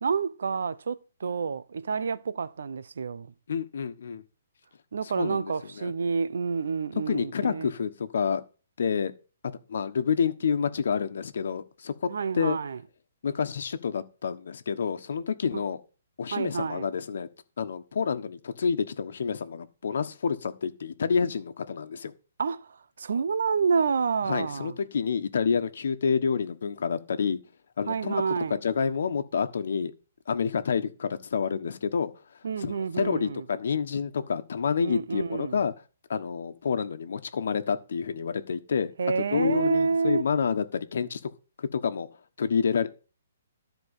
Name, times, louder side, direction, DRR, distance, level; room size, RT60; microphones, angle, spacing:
voice 1, 0.0-3.3 4.9-7.7 12.1-12.8 15.5-15.6 16.3-16.9 22.4-24.7 27.9-28.6 32.4-33.4 34.8-35.6 39.0-40.3, right 5 dB, 70° right, 0.8 m, -28 dB
voice 2, 3.5-4.2 5.2-5.9 7.1-8.4 8.8-9.1 9.7-12.6 13.2-15.8 16.2-17.3 17.6-22.1 24.2-27.4 27.8-28.2 28.5-29.9 30.3-32.1 32.6-35.7 36.1-38.9 39.3-41.2 41.6-42.1 42.4-42.9, left 6 dB, 60° left, 1.3 m, -28 dB
13.0 x 4.6 x 8.2 m
hypercardioid pair, 175°, 0 cm